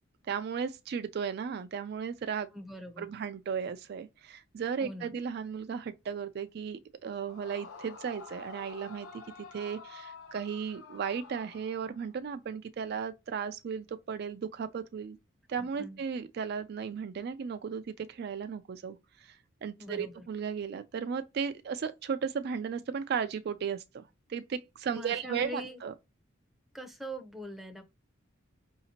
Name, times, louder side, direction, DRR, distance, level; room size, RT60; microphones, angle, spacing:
voice 1, 0.3-2.5 3.0-9.1 9.5-15.2 15.5-24.0 24.3-25.9, right 6 dB, 50° right, 0.3 m, -35 dB
voice 2, 2.5-3.1 4.8-5.1 15.6-16.0 19.8-20.1 24.9-25.8 26.7-27.8, equal, ahead, 0.6 m, -42 dB
Yell / Screaming, 7.2-12.1, left 4 dB, 90° left, 0.8 m, -49 dB
4.9 x 2.7 x 2.8 m
head